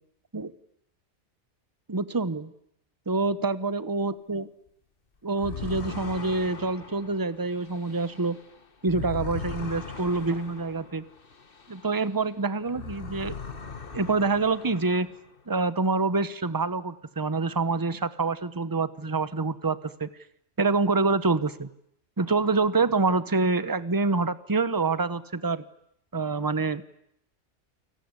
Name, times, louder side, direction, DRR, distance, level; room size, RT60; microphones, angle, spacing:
voice 1, 1.9-2.5 3.1-4.5 5.2-8.4 8.8-11.0 11.7-13.4 13.9-15.1 15.5-20.1 20.6-21.7 22.2-25.6 26.1-26.8, right 3 dB, 20° right, 15 dB, 1.0 m, -26 dB
sound 1, 5.3-12.3 12.6-15.3, left 5 dB, 50° left, 1.8 m, -39 dB
29.5 x 19.0 x 9.8 m, 0.75 s
omnidirectional pair, 1.2 m